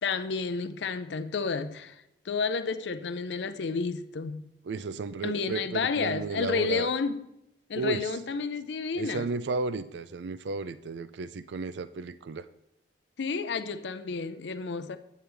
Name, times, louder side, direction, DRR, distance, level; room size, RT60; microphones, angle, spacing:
voice 1, 0.0-2.0 2.3-4.4 5.2-7.2 7.7-9.3 13.2-15.0, left 4 dB, 75° left, 0.5 m, -31 dB
voice 2, 4.6-6.9 7.7-8.2 9.0-12.4, right 4 dB, 75° right, 0.4 m, -33 dB
9.3 x 8.6 x 3.4 m
head